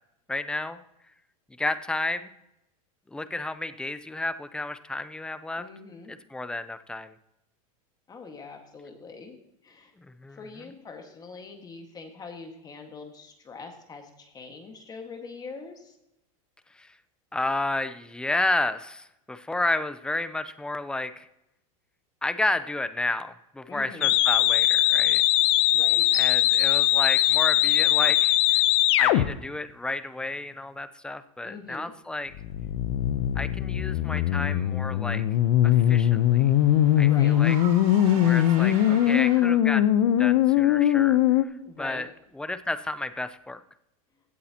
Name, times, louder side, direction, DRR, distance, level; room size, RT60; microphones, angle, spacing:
voice 1, 0.3-0.8 1.6-2.3 3.1-5.7 6.1-7.1 10.0-10.4 16.7-16.9 17.3-21.3 22.2-25.2 26.1-28.6 29.0-32.3 33.3-35.2 35.6-36.5 37.0-37.6 38.1-39.9 40.2-42.1 42.3-43.6, left 2 dB, 5° left, 12 dB, 0.5 m, -31 dB
voice 2, 5.6-6.1 8.1-9.4 9.6-9.9 10.4-16.0 23.7-24.1 25.7-26.1 31.4-31.9 37.0-37.4 41.6-42.1, left 4 dB, 20° left, 4 dB, 1.7 m, -43 dB
sound 1, 24.0-29.2 32.3-41.4, left 12 dB, 60° left, 0.7 m, -21 dB
Car / Engine, 34.8-39.8, right 5 dB, 45° right, 4.4 m, -43 dB
16.0 x 8.3 x 2.9 m, 0.85 s
supercardioid pair, 130°, 18 cm